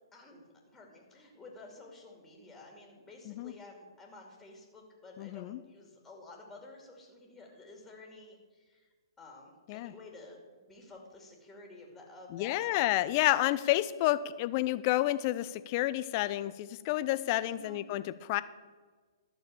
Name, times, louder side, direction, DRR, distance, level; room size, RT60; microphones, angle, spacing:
voice 1, 0.1-8.9 9.2-12.9 17.5-17.8, left 2 dB, 10° left, -1 dB, 2.6 m, -52 dB
voice 2, 5.2-5.6 9.7-9.9 12.3-18.0 18.3-18.4, left 16 dB, 40° left, 15 dB, 0.5 m, -30 dB
12.5 x 6.4 x 7.0 m, 1.4 s
figure-of-eight pair, 125°, 2 cm